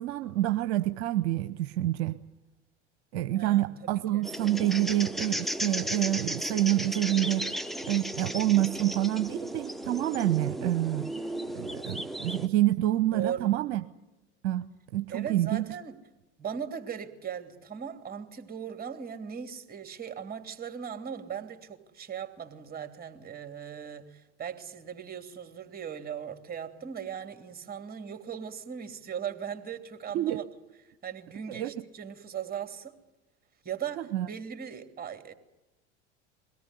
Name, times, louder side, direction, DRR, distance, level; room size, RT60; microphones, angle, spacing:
voice 1, 0.0-2.2 3.1-7.5 7.9-11.1 11.5-13.8 14.4-15.6 30.1-30.4 31.5-31.7 34.0-34.3, right 14 dB, 65° right, 11 dB, 0.9 m, -27 dB
voice 2, 3.3-4.3 13.1-13.6 15.1-16.0 16.4-30.4 31.0-32.9 33.6-35.3, right 8 dB, 25° right, 7 dB, 3.0 m, -38 dB
sound 1, 4.2-12.5, equal, ahead, 1.2 m, -35 dB
23.0 x 18.0 x 9.9 m, 1.0 s
hypercardioid pair, 75°, 36 cm